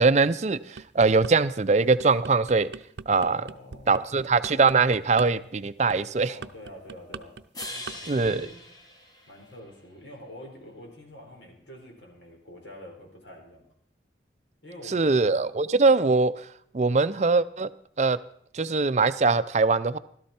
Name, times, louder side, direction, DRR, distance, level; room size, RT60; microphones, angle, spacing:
voice 1, 0.0-2.7 3.1-3.4 3.9-6.3 8.1-8.5 14.9-16.5 16.7-17.7 18.0-18.2 18.5-20.0, right 4 dB, 40° right, 14 dB, 0.5 m, -22 dB
sound 1, 0.5-1.3 1.8-8.0 8.2-8.5, right 5 dB, 80° right, 0.6 m, -41 dB
voice 2, 3.1-4.0 6.2-7.3 7.7-8.6 9.3-13.6 14.6-15.3, left 1 dB, 90° left, 1 dB, 4.1 m, -46 dB
sound 2, 7.5-9.9, left 1 dB, 20° left, 1.4 m, -41 dB
16.0 x 13.0 x 4.3 m, 0.66 s
head